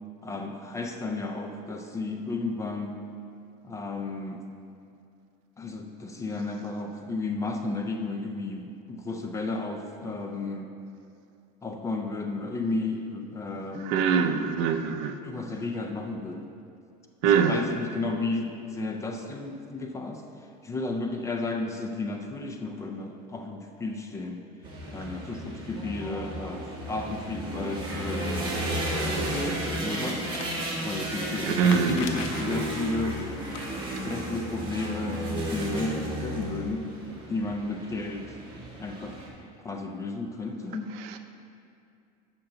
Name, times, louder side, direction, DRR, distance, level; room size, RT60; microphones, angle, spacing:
voice 1, 0.2-3.0 3.6-4.4 5.6-10.7 11.6-14.5 15.2-16.5 17.2-20.2 20.6-24.4 24.9-28.6 29.3-30.4 30.8-33.2 34.0-36.9 37.3-38.4 38.8-39.2 39.6-40.9, left 3 dB, 15° left, 3 dB, 0.3 m, -33 dB
voice 2, 13.8-15.2 17.2-17.6 31.5-32.0, right 7 dB, 60° right, 8 dB, 0.5 m, -23 dB
sound 1, 24.6-39.3, right 1 dB, 25° right, 1.3 m, -33 dB
sound 2, 30.2-30.6 31.6-32.5 33.3-33.6 36.1-36.2 36.4-36.5 37.6-37.7, left 6 dB, 65° left, 0.7 m, -38 dB
7.7 x 5.8 x 3.8 m, 2.5 s
cardioid pair, 155°, 20 cm